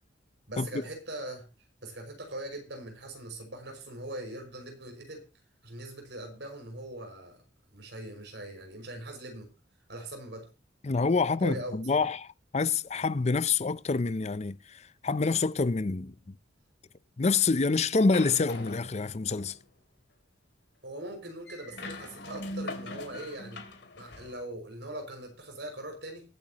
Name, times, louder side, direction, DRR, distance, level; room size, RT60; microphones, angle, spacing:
voice 1, 0.5-1.5 1.8-5.2 5.6-7.4 7.7-9.5 9.9-10.5 11.4-12.1 20.8-23.6 23.9-26.2, right 1 dB, 65° right, 5.9 m, -41 dB
voice 2, 10.8-12.3 12.5-16.1 17.2-19.6, left 4 dB, 35° left, 0.5 m, -27 dB
sound 1, 18.1-19.6 21.5-24.3, left 2 dB, 65° left, 2.8 m, -41 dB
22.5 x 9.0 x 3.0 m
head